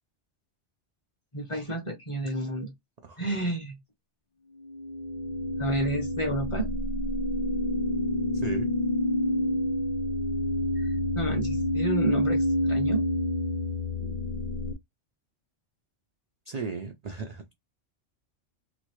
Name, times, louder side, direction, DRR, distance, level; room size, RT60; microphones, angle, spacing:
voice 1, 1.3-2.7 3.2-3.8 5.6-6.7 10.8-13.0, right 2 dB, 30° left, 0.8 m, -31 dB
voice 2, 3.0-3.4 8.3-8.7 14.0-14.6 16.5-17.5, right 4 dB, 60° right, 0.4 m, -37 dB
sound 1, 4.6-14.7, left 1 dB, 60° left, 0.5 m, -28 dB
3.0 x 2.6 x 3.0 m
omnidirectional pair, 1.2 m